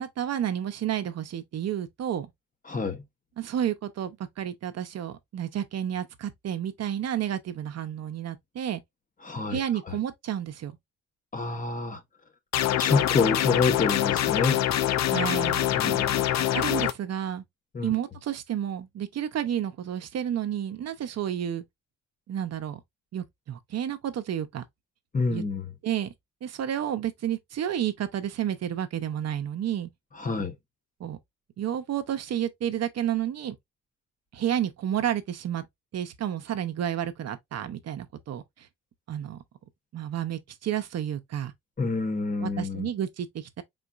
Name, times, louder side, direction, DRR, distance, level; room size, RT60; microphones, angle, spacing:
voice 1, 0.0-2.3 3.4-8.8 9.5-10.8 15.1-16.0 16.5-17.4 17.8-21.6 22.3-22.8 23.1-24.6 25.3-25.4 25.8-26.1 26.4-29.9 31.0-31.2 31.6-33.6 34.3-35.6 35.9-38.7 39.1-39.4 39.9-41.5 42.4-43.6, right 10 dB, 60° right, 0.8 m, -31 dB
voice 2, 2.7-3.0 9.2-9.6 9.9-10.0 11.3-12.0 12.8-14.6 15.7-16.3 17.7-17.9 25.1-25.7 30.2-30.5 41.8-42.9, left 4 dB, 25° left, 1.0 m, -27 dB
sound 1, 12.5-16.9, left 12 dB, 60° left, 0.5 m, -25 dB
4.2 x 3.9 x 2.4 m
cardioid pair, 90°, 30 cm